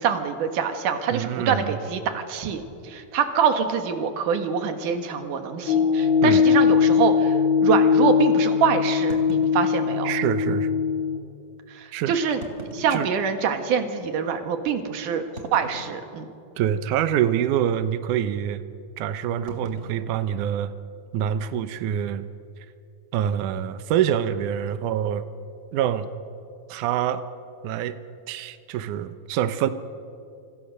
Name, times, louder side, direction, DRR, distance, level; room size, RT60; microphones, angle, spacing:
voice 1, 0.0-10.1 11.7-12.4 12.7-15.2 15.5-16.3, right 7 dB, 60° right, 7 dB, 2.8 m, -25 dB
voice 2, 1.1-1.7 6.2-6.4 10.0-10.7 11.9-12.2 12.9-13.1 16.6-18.6 19.0-20.7 21.1-22.3 23.1-25.2 25.7-26.1 26.7-27.3 27.6-28.0 28.3-29.7, right 10 dB, 90° right, 11 dB, 1.8 m, -25 dB
sound 1, 4.4-4.5 5.3-5.4 5.7-5.8 6.4-6.5 9.1-10.3 11.1-11.2 12.2-13.7 14.2-14.3 15.4-16.4 16.7-17.1 17.3-17.7 19.5-21.1, right 1 dB, 20° right, 2.8 m, -43 dB
sound 2, 5.7-11.2, left 6 dB, 65° left, 3.2 m, -20 dB
28.0 x 25.0 x 6.6 m, 2.5 s
omnidirectional pair, 4.8 m